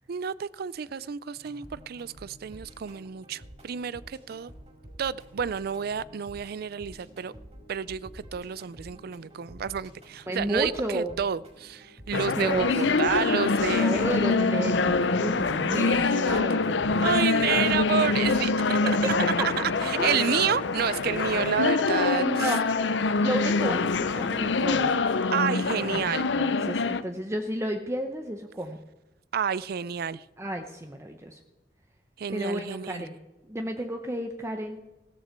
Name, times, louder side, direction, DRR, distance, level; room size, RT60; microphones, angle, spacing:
voice 1, 0.1-4.5 5.0-7.3 7.7-14.0 15.7-16.4 17.0-18.8 19.4-22.6 25.3-26.3 29.3-30.3 32.2-33.1, right 7 dB, 60° right, 20 dB, 0.4 m, -30 dB
sound 1, 1.4-18.3, equal, 40° right, 5.6 m, -49 dB
voice 2, 10.3-11.1 12.4-13.1 13.8-17.2 18.2-18.5 18.8-18.9 20.0-20.4 22.2-22.7 23.2-25.0 25.8-28.8 30.4-31.4 32.3-33.1 33.5-34.8, right 1 dB, 15° right, 5 dB, 0.7 m, -32 dB
sound 2, 12.1-27.0, left 4 dB, 80° left, 0.6 m, -25 dB
16.0 x 13.5 x 4.5 m, 1.1 s
head